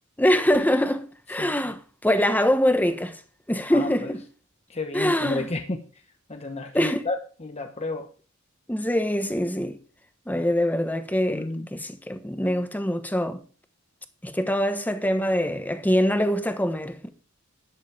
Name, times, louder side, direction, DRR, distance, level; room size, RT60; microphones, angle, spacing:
voice 1, 0.2-3.2 3.5-4.2 4.9-5.5 6.7-7.0 8.7-9.8 10.3-13.4 14.2-17.1, equal, 10° left, 1.2 m, -24 dB
voice 2, 1.4-1.7 3.7-4.1 4.7-5.8 6.3-8.1 11.3-11.7, left 2 dB, 30° left, 1.0 m, -31 dB
12.0 x 10.5 x 3.5 m
head